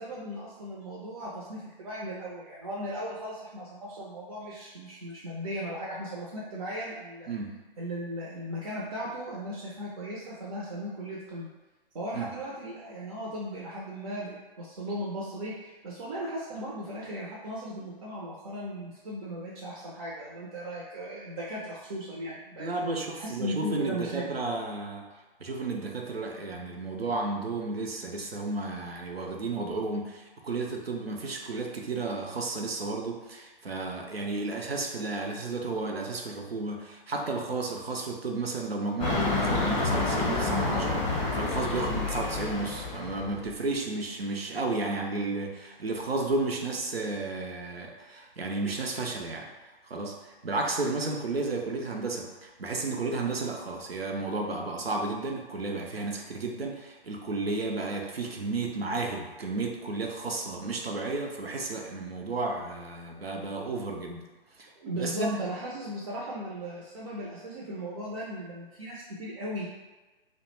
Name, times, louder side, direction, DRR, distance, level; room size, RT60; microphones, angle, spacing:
voice 1, 0.0-7.3 7.8-11.5 11.9-24.2 64.8-69.7, equal, 40° right, -5 dB, 0.4 m, -37 dB
voice 2, 7.3-7.6 12.1-12.3 22.6-25.1 25.4-49.5 49.9-64.3 64.6-64.7 65.0-65.4, right 3 dB, 90° right, 1 dB, 0.5 m, -33 dB
sound 1, 39.0-43.5, left 3 dB, 30° left, 0.6 m, -29 dB
2.2 x 2.1 x 3.0 m, 1.2 s
figure-of-eight pair, 125°, 29 cm